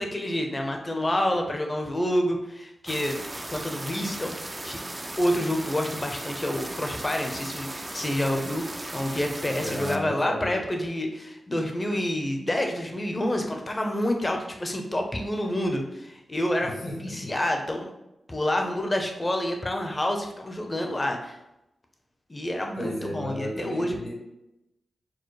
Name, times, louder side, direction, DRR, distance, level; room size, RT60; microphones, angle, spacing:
voice 1, 0.0-3.2 3.5-4.4 4.6-4.8 5.2-16.7 17.0-17.9 18.3-21.4 22.3-24.0, left 1 dB, 25° left, 3 dB, 0.6 m, -28 dB
sound 1, 2.9-10.0, right 1 dB, 20° right, 0.3 m, -37 dB
voice 2, 9.6-10.5 16.6-17.3 22.8-24.1, left 1 dB, 55° left, -3 dB, 1.2 m, -34 dB
4.7 x 2.0 x 4.6 m, 0.89 s
wide cardioid pair, 115°, 0 cm